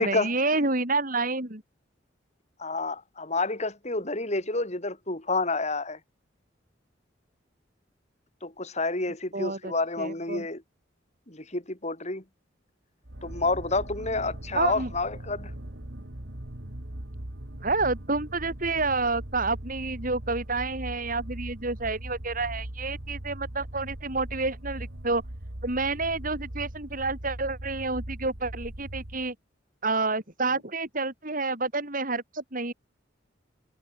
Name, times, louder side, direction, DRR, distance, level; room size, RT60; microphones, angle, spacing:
voice 1, 0.0-1.6 9.3-9.7 10.0-10.5 14.5-14.9 17.6-25.2 25.6-29.3 29.8-32.7, right 3 dB, 45° right, 5.5 m, -29 dB
voice 2, 2.6-6.0 8.4-10.6 11.3-12.2 13.2-15.5, left 3 dB, 40° left, 5.3 m, -29 dB
sound 1, 13.0-29.3, right 1 dB, 70° right, 2.7 m, -40 dB
head